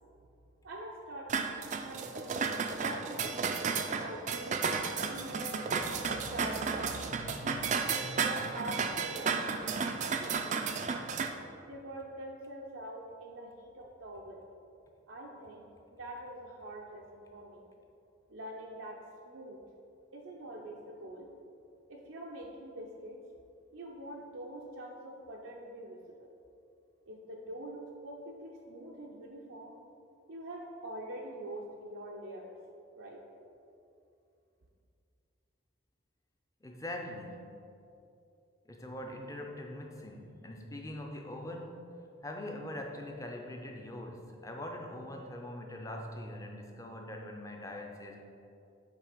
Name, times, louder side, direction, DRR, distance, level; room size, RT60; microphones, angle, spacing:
voice 1, 0.6-3.6 4.0-9.6 10.0-10.9 11.6-14.4 15.1-17.6 18.3-19.0 19.2-19.6 20.1-21.3 21.9-23.2 23.7-26.0 27.1-29.7 30.3-32.5 33.0-33.2, right 1 dB, 85° right, -2 dB, 0.6 m, -44 dB
sound 1, 1.3-11.3, right 5 dB, 40° right, 0.3 m, -33 dB
voice 2, 36.6-37.7 38.6-48.2, left 1 dB, 15° left, 2 dB, 0.5 m, -43 dB
7.3 x 3.3 x 5.0 m, 2.6 s
head